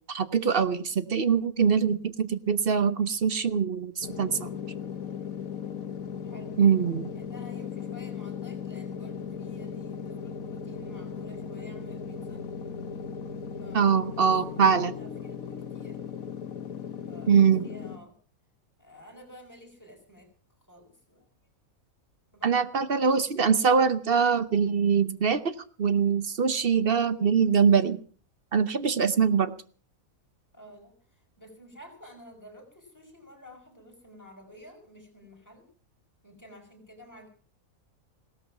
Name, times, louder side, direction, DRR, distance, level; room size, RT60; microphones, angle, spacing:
voice 1, 0.1-4.5 6.6-7.1 13.7-14.9 17.3-17.7 22.4-28.0 28.5-29.5, right 6 dB, 45° right, 13 dB, 1.0 m, -23 dB
sound 1, 4.0-18.0, left 7 dB, 75° left, 1.6 m, -37 dB
voice 2, 6.2-6.6 7.2-12.4 13.6-16.0 17.1-18.1 18.8-20.3 20.7-21.3 22.3-22.7 30.5-35.7 36.2-37.3, equal, 10° left, 1 dB, 5.4 m, -51 dB
17.0 x 13.5 x 6.0 m, 0.42 s
omnidirectional pair, 1.5 m